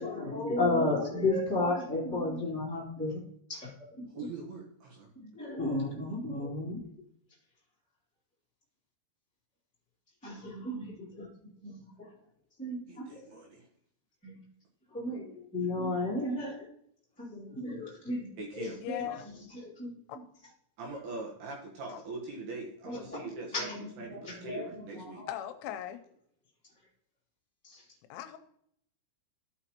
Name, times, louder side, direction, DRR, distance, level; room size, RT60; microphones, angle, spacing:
voice 1, 0.0-3.2 3.5-4.1 5.1-6.9 10.2-11.3 11.6-12.1 12.6-13.3 14.2-14.4 14.9-16.7 17.2-19.9 22.8-23.2 23.5-25.3 27.6-27.8, left 2 dB, 10° left, -8 dB, 0.4 m, -34 dB
voice 2, 4.1-5.1 12.9-13.7 18.4-18.8 20.8-25.2, right 3 dB, 70° right, -2 dB, 2.7 m, -42 dB
voice 3, 18.8-19.3 20.1-20.2 21.9-22.0 25.3-26.0 28.1-28.4, left 12 dB, 80° left, 8 dB, 2.9 m, -38 dB
14.5 x 5.9 x 2.9 m, 0.70 s
omnidirectional pair, 5.7 m